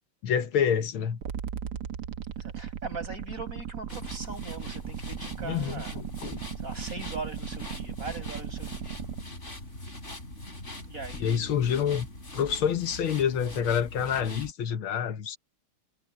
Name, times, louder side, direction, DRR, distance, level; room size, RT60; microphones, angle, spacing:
voice 1, 0.2-1.2 5.4-6.4 11.2-12.1 12.3-15.4, left 8 dB, 75° left, 1.9 m, -27 dB
sound 1, 1.2-9.2, right 9 dB, 55° right, 1.4 m, -37 dB
voice 2, 2.4-5.9 6.6-9.0 10.9-11.6, right 3 dB, 40° right, 7.6 m, -40 dB
sound 2, 3.9-14.5, left 1 dB, 30° left, 7.5 m, -42 dB
omnidirectional pair, 2.3 m